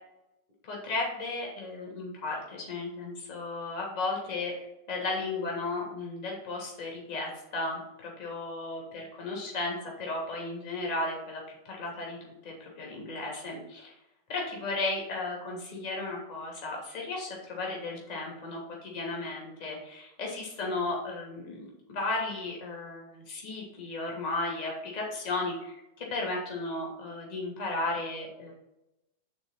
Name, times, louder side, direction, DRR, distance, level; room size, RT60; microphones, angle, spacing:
voice 1, 0.6-13.9 14.3-28.5, left 2 dB, 50° left, -2 dB, 2.7 m, -35 dB
6.3 x 4.0 x 5.9 m, 0.91 s
figure-of-eight pair, 90°, 0 cm